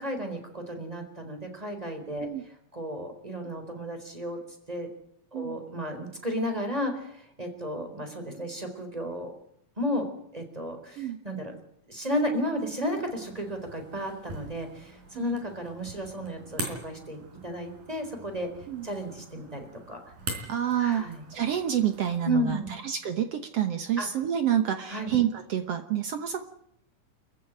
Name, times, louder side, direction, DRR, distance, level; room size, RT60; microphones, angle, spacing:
voice 1, 0.0-4.4 4.7-4.9 5.3-9.3 9.8-11.6 11.9-18.5 18.8-20.0 20.8-21.3 22.2-22.8 24.0-24.1 24.9-25.1, equal, 10° right, 5 dB, 4.1 m, -33 dB
sound 1, 13.1-22.3, right 2 dB, 90° right, 6.1 m, -43 dB
voice 2, 20.5-22.6 22.8-26.4, right 10 dB, 60° right, 8 dB, 1.8 m, -28 dB
26.5 x 15.0 x 9.1 m, 0.73 s
omnidirectional pair, 3.7 m